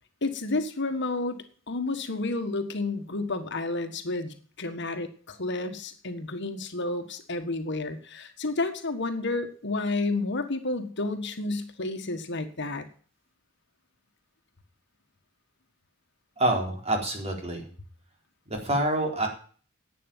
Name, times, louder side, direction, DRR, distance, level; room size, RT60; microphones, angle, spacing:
voice 1, 0.2-1.4 1.7-12.9, left 2 dB, 60° left, 8 dB, 1.6 m, -31 dB
voice 2, 16.4-17.7 18.5-19.3, right 1 dB, 30° right, 2 dB, 4.3 m, -27 dB
11.0 x 8.6 x 9.1 m, 0.44 s
head